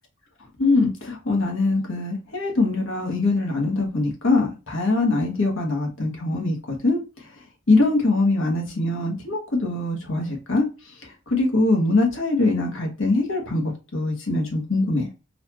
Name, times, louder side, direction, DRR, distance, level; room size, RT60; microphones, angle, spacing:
voice 1, 0.6-7.0 7.7-10.7 11.0-15.1, left 2 dB, 65° left, 2 dB, 1.4 m, -22 dB
4.1 x 2.7 x 2.9 m, 0.31 s
head